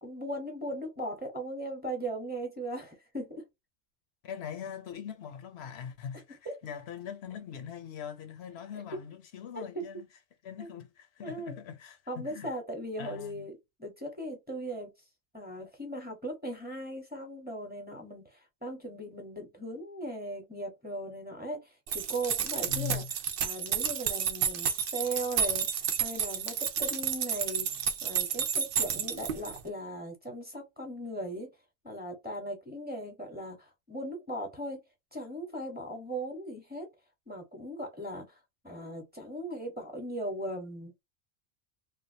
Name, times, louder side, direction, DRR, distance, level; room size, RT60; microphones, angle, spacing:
voice 1, 0.0-3.4 6.4-6.5 9.5-9.8 10.6-10.7 11.2-11.6 12.1-14.9 15.3-23.0 23.4-25.7 26.0-27.7 28.0-31.5 31.8-34.8 35.1-36.9 37.3-38.3 38.6-41.0, right 1 dB, 10° right, 1.0 m, -38 dB
voice 2, 4.2-10.1 10.4-12.5 13.0-13.5 22.7-23.1, left 7 dB, 80° left, 0.9 m, -41 dB
sound 1, 21.9-29.6, right 7 dB, 65° right, 0.8 m, -31 dB
3.3 x 2.4 x 2.7 m
omnidirectional pair, 1.1 m